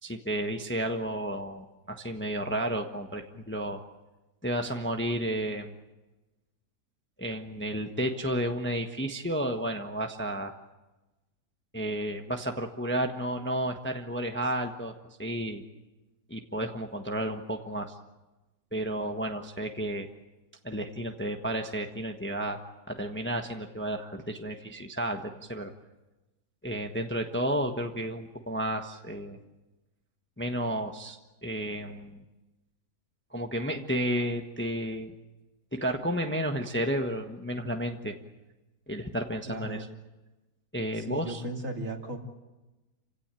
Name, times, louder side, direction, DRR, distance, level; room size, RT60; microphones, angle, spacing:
voice 1, 0.0-3.8 4.4-5.7 7.2-10.5 11.7-14.9 15.2-15.6 16.3-17.9 18.7-20.1 20.6-22.6 22.9-25.7 26.6-29.4 30.4-32.2 33.3-35.1 35.7-38.1 38.9-39.9 40.7-41.4, right 1 dB, 10° left, 4 dB, 1.2 m, -32 dB
voice 2, 39.5-39.9 40.9-42.2, right 2 dB, 50° right, 2 dB, 3.1 m, -36 dB
28.5 x 17.0 x 9.0 m, 1.1 s
omnidirectional pair, 1.7 m